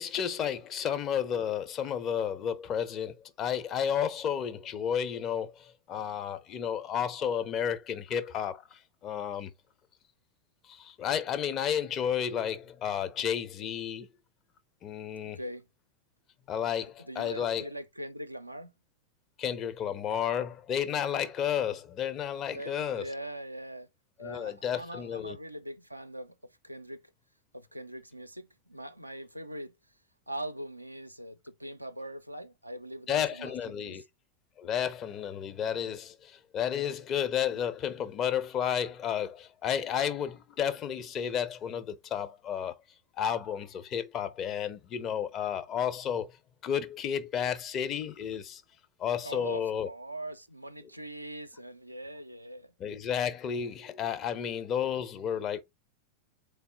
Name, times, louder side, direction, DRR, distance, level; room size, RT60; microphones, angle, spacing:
voice 1, 0.0-9.5 10.7-14.1 14.8-15.4 16.5-17.7 19.4-23.1 24.2-25.4 33.1-34.0 34.6-42.7 43.2-46.4 46.6-48.6 49.0-49.9 52.8-55.6, left 8 dB, 30° left, 0.7 m, -32 dB
voice 2, 15.2-15.7 17.0-18.7 22.5-23.9 24.2-27.0 27.5-29.8 30.3-34.0 49.2-52.7, right 1 dB, 90° right, 0.5 m, -42 dB
4.2 x 3.4 x 3.7 m
figure-of-eight pair, 90°, 0 cm